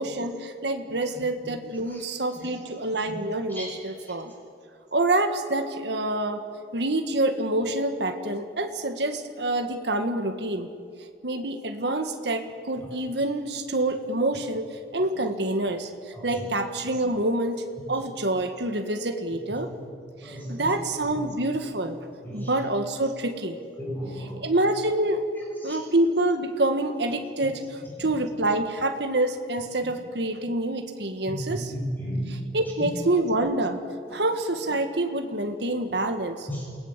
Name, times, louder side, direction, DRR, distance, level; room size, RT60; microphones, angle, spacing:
voice 1, 0.0-4.3 4.9-6.5 6.7-10.7 11.2-19.7 20.2-22.0 22.3-23.6 24.1-25.2 25.6-31.7 32.3-33.8 34.1-36.5, right 2 dB, 70° right, 6 dB, 1.7 m, -27 dB
voice 2, 20.2-20.6 22.2-22.5 23.8-24.3 25.7-25.8 31.3-32.2, equal, 10° left, -3 dB, 6.5 m, -33 dB
28.5 x 18.5 x 7.5 m, 2.3 s
head